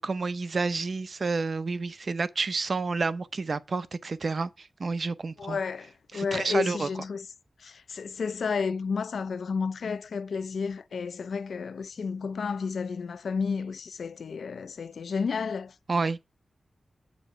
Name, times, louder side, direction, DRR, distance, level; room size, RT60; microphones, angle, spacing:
voice 1, 0.0-5.6 6.1-6.9 15.9-16.2, right 4 dB, 50° right, 0.6 m, -29 dB
voice 2, 5.4-7.3 7.6-15.7, left 5 dB, 80° left, 0.6 m, -31 dB
8.5 x 5.2 x 4.7 m
wide cardioid pair, 130°, 0 cm